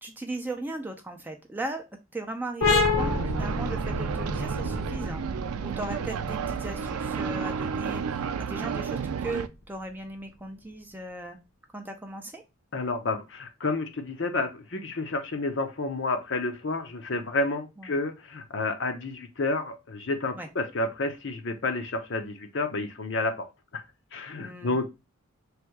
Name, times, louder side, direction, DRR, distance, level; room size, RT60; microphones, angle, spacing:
voice 1, 0.0-1.8 2.1-5.2 5.6-11.4 11.7-12.4 17.8-18.0 20.4-20.5 24.4-24.9, right 2 dB, 10° right, 4 dB, 0.4 m, -37 dB
sound 1, 2.6-9.9, left 3 dB, 75° left, 1.1 m, -30 dB
sound 2, 3.0-9.5, right 6 dB, 85° right, 0.4 m, -31 dB
voice 2, 12.7-23.5 23.7-23.8 24.1-24.9, left 2 dB, 55° left, 5 dB, 0.7 m, -30 dB
3.3 x 2.7 x 4.5 m, 0.25 s
head